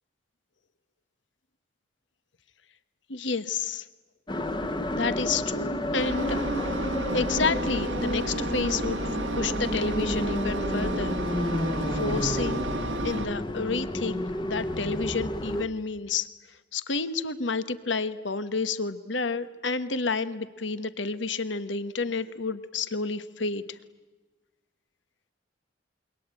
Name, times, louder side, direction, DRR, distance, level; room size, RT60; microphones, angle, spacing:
voice 1, 3.1-3.8 4.9-6.4 7.1-9.0 9.4-11.2 11.8-12.6 13.0-16.3 16.7-23.8, left 4 dB, 80° left, 13 dB, 1.3 m, -30 dB
sound 1, 4.3-15.7, left 1 dB, 25° left, 1.1 m, -31 dB
Engine, 6.0-13.3, right 2 dB, 80° right, 1.3 m, -32 dB
27.5 x 23.5 x 9.0 m, 1.3 s
head